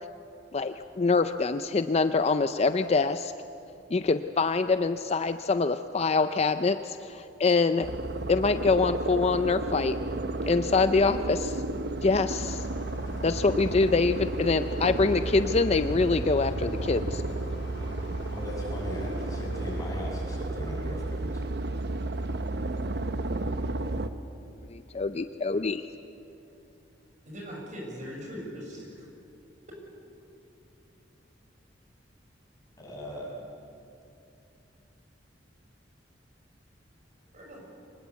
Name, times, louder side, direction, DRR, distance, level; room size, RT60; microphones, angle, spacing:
voice 1, 0.5-3.3 3.9-7.9 8.3-10.0 10.5-11.6 12.0-12.7 13.2-17.2 24.7-25.9, left 4 dB, 35° left, 10 dB, 0.5 m, -25 dB
sound 1, 7.8-24.1, right 2 dB, 60° right, 1.0 m, -32 dB
sound 2, 12.1-19.9, left 1 dB, 85° left, 3.1 m, -45 dB
voice 2, 18.3-21.4 32.8-33.3, equal, 20° left, -3 dB, 6.4 m, -38 dB
voice 3, 27.3-29.1 37.3-37.8, equal, 40° right, -1 dB, 6.5 m, -40 dB
25.0 x 19.5 x 8.3 m, 2.7 s
head